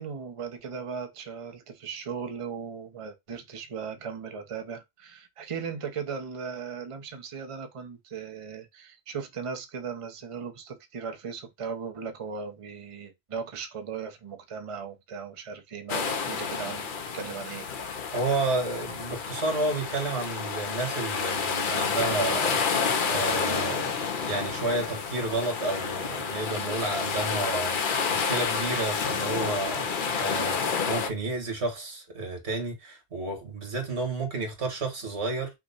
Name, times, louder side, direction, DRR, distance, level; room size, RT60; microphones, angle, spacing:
voice 1, 0.0-17.7, right 6 dB, 35° right, 0.7 m, -37 dB
sound 1, 15.9-31.1, left 5 dB, 55° left, 0.8 m, -29 dB
voice 2, 18.1-23.9 24.3-35.5, right 2 dB, 90° right, 2.0 m, -31 dB
6.0 x 2.2 x 4.0 m
omnidirectional pair, 1.1 m